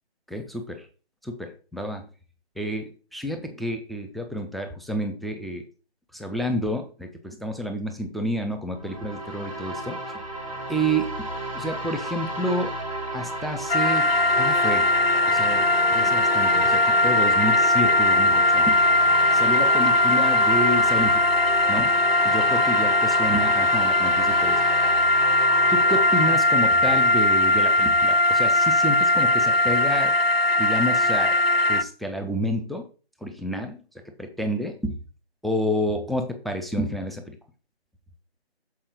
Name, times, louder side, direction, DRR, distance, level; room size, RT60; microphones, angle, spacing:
voice 1, 0.3-0.9 1.2-2.0 2.6-5.6 6.1-10.2 10.7-12.7 13.1-14.1 14.4-14.9 15.3-15.6 15.9-18.8 19.3-21.2 21.7-21.9 22.2-24.6 25.7-30.1 30.6-31.4 31.7-32.9 33.2-33.8 34.2-35.0 35.4-37.2, equal, ahead, 4 dB, 0.5 m, -29 dB
sound 1, 8.7-26.4, right 1 dB, 30° right, 1.4 m, -33 dB
sound 2, 13.7-31.8, left 1 dB, 60° left, 0.5 m, -20 dB
7.0 x 4.8 x 4.9 m, 0.36 s
figure-of-eight pair, 180°, 33 cm